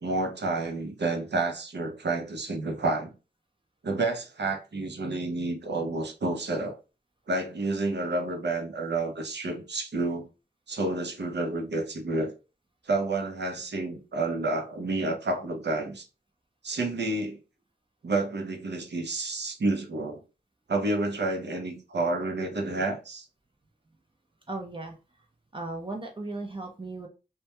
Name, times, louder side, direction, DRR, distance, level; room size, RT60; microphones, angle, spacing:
voice 1, 0.0-3.1 3.8-6.8 7.3-10.3 10.7-12.3 12.9-16.1 16.6-17.4 18.0-20.2 20.7-23.3, right 2 dB, 75° right, 0.6 m, -29 dB
voice 2, 24.5-25.0 25.5-27.1, right 2 dB, 30° right, 0.5 m, -36 dB
2.2 x 2.1 x 2.8 m
wide cardioid pair, 60°, 18 cm